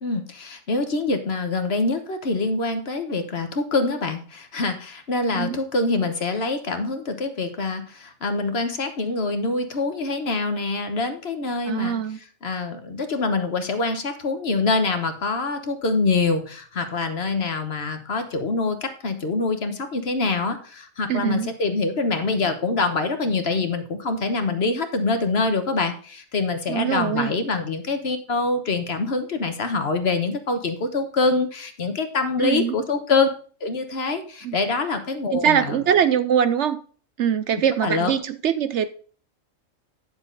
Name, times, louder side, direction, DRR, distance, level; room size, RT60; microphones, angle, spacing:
voice 1, 0.0-12.0 12.4-33.3 33.6-35.8 37.8-38.1, left 3 dB, 50° left, 1.3 m, -25 dB
voice 2, 11.7-12.2 21.1-21.5 26.7-27.3 32.4-32.7 34.4-34.6 35.3-36.8 37.2-38.9, right 8 dB, 65° right, 0.9 m, -22 dB
10.0 x 7.1 x 3.8 m
omnidirectional pair, 1.4 m